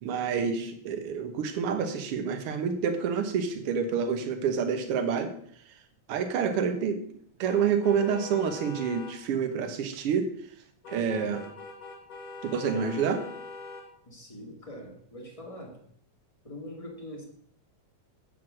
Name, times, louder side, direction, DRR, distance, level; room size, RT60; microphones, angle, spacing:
voice 1, 0.0-5.3 6.1-7.0 7.4-10.3 10.9-11.4 12.4-13.2, right 6 dB, 60° right, 7 dB, 1.8 m, -28 dB
sound 1, 7.4-9.2 10.8-13.9, left 3 dB, 60° left, 2.8 m, -43 dB
voice 2, 14.1-15.8 16.4-17.2, left 1 dB, 15° left, 0 dB, 1.3 m, -43 dB
8.0 x 6.3 x 6.1 m, 0.64 s
omnidirectional pair, 3.3 m